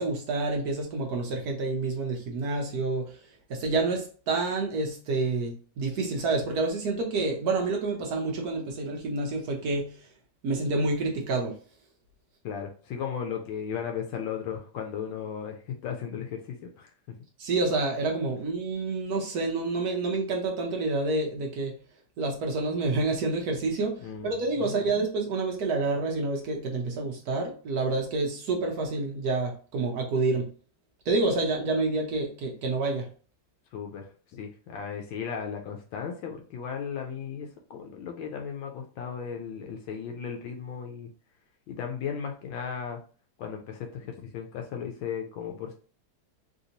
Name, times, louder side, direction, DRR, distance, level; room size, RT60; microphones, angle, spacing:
voice 1, 0.0-3.2 3.5-9.9 10.4-11.5 17.4-21.7 22.2-30.5 31.1-33.1, right 3 dB, 65° right, 2 dB, 1.0 m, -28 dB
voice 2, 12.4-16.9 24.0-24.8 33.7-41.1 41.7-43.0 43.4-45.7, left 7 dB, 80° left, 3 dB, 1.3 m, -36 dB
3.5 x 2.6 x 2.8 m, 0.40 s
omnidirectional pair, 2.2 m